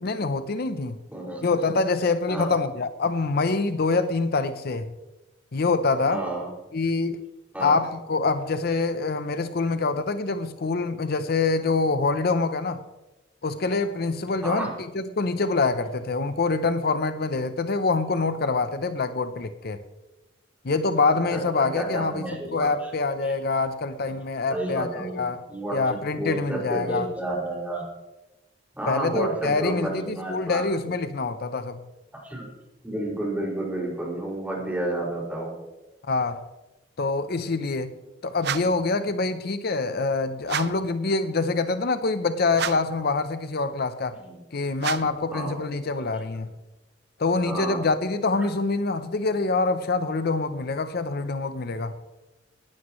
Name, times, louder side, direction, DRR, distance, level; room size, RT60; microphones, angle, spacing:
voice 1, 0.0-1.0 1.4-4.9 5.5-6.2 6.7-7.2 7.6-12.8 13.4-14.7 14.9-19.8 20.6-25.4 25.7-27.1 28.9-31.8 36.1-36.4 37.0-37.9 38.2-44.2 44.5-46.5 47.2-51.9, left 3 dB, 55° left, 0.7 m, -25 dB
voice 2, 1.1-1.5 2.3-2.5 6.1-6.5 7.5-7.7 14.4-14.7 21.1-22.9 23.2-23.3 24.5-25.2 25.5-27.8 28.8-30.9 32.1-32.4 32.8-35.5 44.2-44.3 45.3-45.5 47.5-47.8, right 1 dB, 10° right, 5.5 m, -31 dB
sound 1, 38.4-38.9 40.4-40.9 42.5-43.0 44.8-45.3, right 8 dB, 60° right, 0.6 m, -31 dB
19.0 x 15.5 x 3.1 m
head